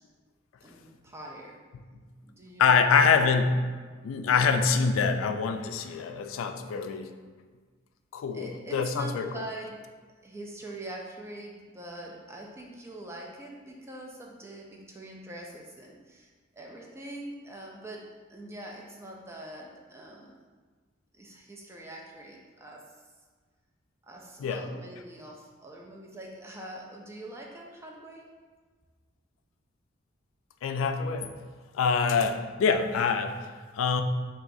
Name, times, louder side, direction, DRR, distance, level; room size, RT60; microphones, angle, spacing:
voice 1, 0.6-1.6 2.2-3.3 8.3-9.8 10.2-20.3 21.1-23.0 24.0-28.3, right 1 dB, 15° right, -1 dB, 0.3 m, -43 dB
voice 2, 2.6-3.6 4.0-7.1 8.1-9.4 24.4-24.6 30.6-31.3 31.7-33.4 33.7-34.0, left 5 dB, 90° left, 8 dB, 0.3 m, -25 dB
5.8 x 2.3 x 2.6 m, 1.5 s
head